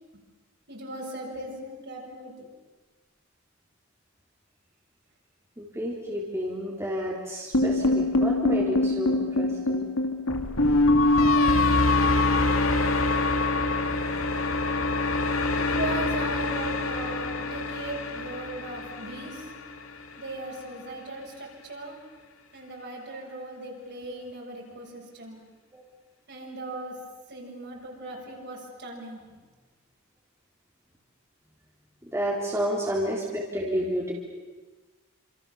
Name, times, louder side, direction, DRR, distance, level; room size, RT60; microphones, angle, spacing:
voice 1, 0.7-2.5 15.6-19.5 20.1-22.0 22.5-25.4 26.3-27.0 27.3-29.2, right 2 dB, 50° right, -1 dB, 7.1 m, -38 dB
voice 2, 5.6-9.9 14.1-14.3 25.7-25.8 32.0-34.1, equal, 15° right, -3 dB, 3.7 m, -31 dB
sound 1, 7.5-19.7, left 2 dB, 75° left, 2.7 m, -24 dB
28.5 x 27.5 x 7.3 m, 1.3 s
head